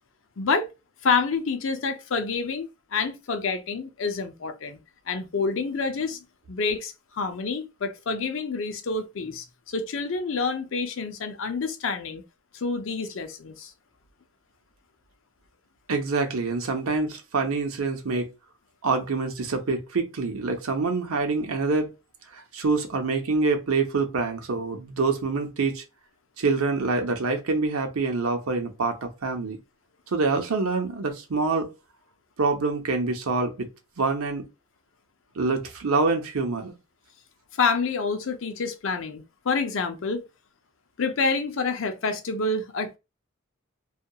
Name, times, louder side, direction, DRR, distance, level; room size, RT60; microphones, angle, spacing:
voice 1, 0.4-0.7 1.0-4.8 5.1-12.2 12.5-13.7 37.6-40.2 41.0-43.0, left 4 dB, 65° left, 0.5 m, -28 dB
voice 2, 15.9-18.3 18.8-21.9 22.3-25.8 26.4-29.6 30.1-31.7 32.4-33.7 34.0-34.5 35.4-36.7, right 3 dB, 85° right, 0.7 m, -26 dB
2.8 x 2.3 x 2.3 m
head